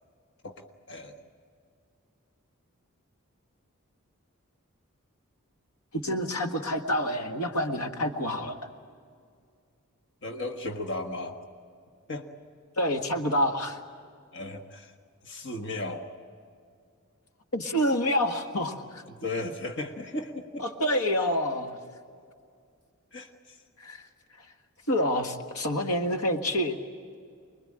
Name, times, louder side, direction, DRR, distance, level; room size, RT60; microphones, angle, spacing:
voice 1, 0.4-1.3 10.2-11.4 12.1-12.3 14.3-14.9 15.2-16.1 19.1-20.7 23.1-23.6, left 2 dB, 55° left, 4 dB, 1.5 m, -36 dB
voice 2, 5.9-8.6 12.8-13.8 17.5-19.0 20.6-21.8 23.8-24.1 24.9-26.8, equal, 85° left, 5 dB, 1.7 m, -27 dB
25.5 x 21.5 x 8.8 m, 2.3 s
head